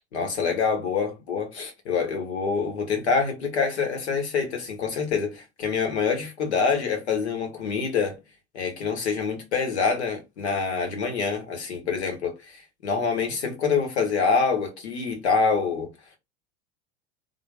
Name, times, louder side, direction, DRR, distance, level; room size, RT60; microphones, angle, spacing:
voice 1, 0.1-8.2 8.5-15.9, left 5 dB, 70° left, 1.6 m, -26 dB
3.9 x 3.1 x 3.5 m
figure-of-eight pair, 85°, 34 cm